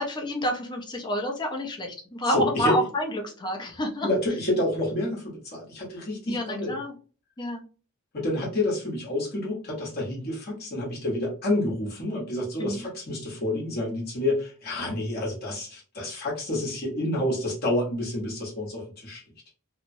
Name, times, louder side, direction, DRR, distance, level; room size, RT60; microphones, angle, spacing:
voice 1, 0.0-4.1 6.3-6.9 7.4-7.6 12.6-12.8, equal, 20° left, 1 dB, 0.6 m, -29 dB
voice 2, 2.2-2.8 4.0-6.8 8.1-19.2, left 1 dB, 45° left, -4 dB, 1.0 m, -29 dB
2.9 x 2.1 x 2.6 m, 0.37 s
head